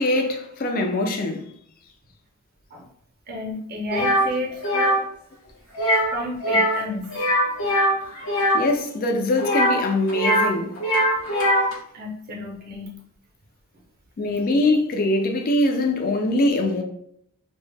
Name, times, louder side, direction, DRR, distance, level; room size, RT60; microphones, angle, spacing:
voice 1, 0.0-1.4 4.7-4.9 8.5-10.8 14.2-16.8, left 2 dB, 40° left, 0.4 m, -22 dB
voice 2, 3.3-5.0 6.1-7.1 11.9-12.9, left 1 dB, 45° right, 0.5 m, -31 dB
sound 1, 3.9-4.2 4.6-5.0 5.7-6.1 6.4-6.8 7.1-8.6 9.4-10.5 10.8-11.7, equal, 80° left, 0.7 m, -21 dB
2.1 x 2.0 x 3.2 m
head